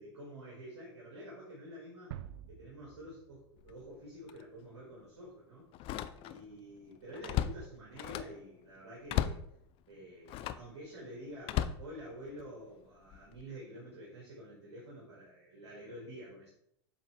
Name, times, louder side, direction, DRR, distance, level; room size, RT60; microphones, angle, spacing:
voice 1, 0.0-2.1 2.5-5.7 6.2-9.4 9.9-16.5, equal, 80° right, -5 dB, 2.1 m, -48 dB
sound 1, 2.1-4.9, right 11 dB, 65° right, 0.4 m, -49 dB
Slam, 3.6-3.8 4.3-4.4 5.7-6.5 6.9-8.4 9.1-9.5 10.3-10.7 11.4-12.5 13.1-13.4, left 11 dB, 40° left, 0.4 m, -36 dB
7.7 x 3.9 x 3.5 m, 0.73 s
hypercardioid pair, 90°, 14 cm